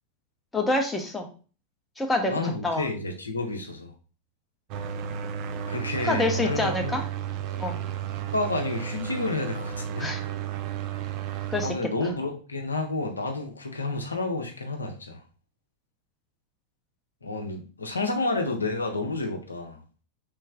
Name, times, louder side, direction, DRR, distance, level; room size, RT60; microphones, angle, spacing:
voice 1, 0.5-1.3 2.0-2.9 6.0-7.0 7.6-7.8 10.0-10.2 11.5-11.7, left 2 dB, 10° left, 3 dB, 0.7 m, -27 dB
voice 2, 2.3-3.9 5.7-7.0 8.3-10.1 11.6-15.2 17.2-19.8, left 2 dB, 75° left, 4 dB, 0.6 m, -30 dB
sound 1, 4.7-11.7, right 9 dB, 40° right, 0.4 m, -33 dB
3.3 x 3.2 x 3.4 m, 0.38 s
figure-of-eight pair, 90°, 0 cm